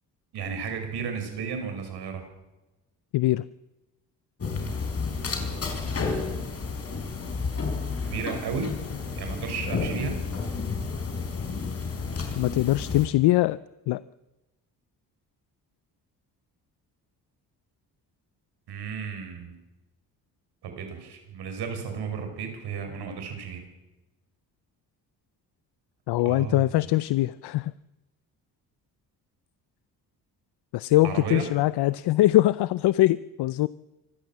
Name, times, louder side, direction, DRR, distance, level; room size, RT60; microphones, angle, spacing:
voice 1, 0.3-2.3 8.0-8.7 9.2-10.2 18.7-19.5 20.6-23.6 26.2-26.6 31.0-31.5, right 6 dB, 80° right, 5 dB, 5.8 m, -33 dB
voice 2, 3.1-3.4 12.4-13.6 13.9-14.0 26.1-27.7 30.7-33.7, left 16 dB, 80° left, 18 dB, 0.6 m, -22 dB
sound 1, 4.4-13.1, left 4 dB, 35° left, 4.1 m, -31 dB
25.5 x 15.0 x 7.4 m, 1.0 s
cardioid pair, 115°, 39 cm